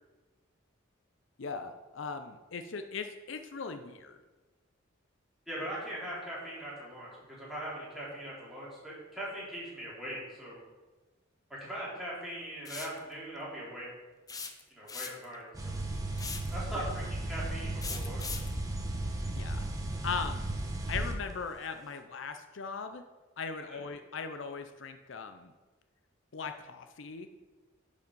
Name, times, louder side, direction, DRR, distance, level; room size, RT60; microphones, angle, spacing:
voice 1, 1.4-4.2 16.7-16.8 19.4-19.7 20.0-20.5 20.9-23.0 23.4-25.5 26.3-27.3, left 5 dB, 65° left, 8 dB, 0.6 m, -39 dB
voice 2, 5.5-10.6 11.6-13.9 14.7-15.8 16.5-18.4 23.6-23.8, right 1 dB, ahead, -7 dB, 3.4 m, -41 dB
sound 1, 12.7-13.0 14.3-15.4 16.2-16.5 17.8-18.5, left 5 dB, 20° left, 0.7 m, -39 dB
sound 2, 15.5-21.1, right 1 dB, 15° right, 1.0 m, -35 dB
12.0 x 5.3 x 5.4 m, 1.2 s
head